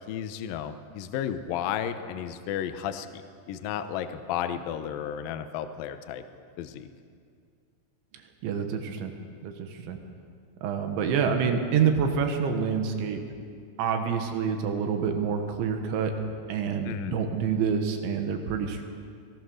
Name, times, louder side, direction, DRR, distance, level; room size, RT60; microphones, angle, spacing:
voice 1, 0.1-3.1 3.5-6.2 6.6-6.9 16.8-17.2, left 9 dB, 75° left, 9 dB, 2.1 m, -33 dB
voice 2, 8.4-9.1 9.4-9.5 9.9-10.0 10.6-13.2 13.8-16.1 16.5-18.8, right 6 dB, 85° right, 5 dB, 3.7 m, -27 dB
24.0 x 18.0 x 6.4 m, 2.2 s
omnidirectional pair, 5.2 m